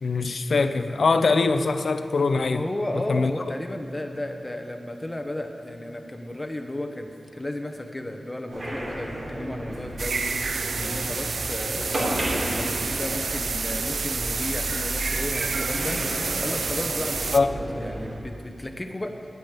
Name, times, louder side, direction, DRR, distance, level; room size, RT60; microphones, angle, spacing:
voice 1, 0.0-2.6 3.1-3.3 17.3-17.5, left 4 dB, 75° left, 9 dB, 0.6 m, -22 dB
voice 2, 2.5-16.0 16.4-19.2, left 1 dB, 20° left, 4 dB, 0.8 m, -34 dB
sound 1, 8.5-18.2, right 1 dB, 60° right, 3.5 m, -32 dB
sound 2, 10.0-17.4, right 4 dB, 80° right, 0.5 m, -29 dB
10.0 x 8.3 x 8.0 m, 2.5 s
wide cardioid pair, 95°, 0 cm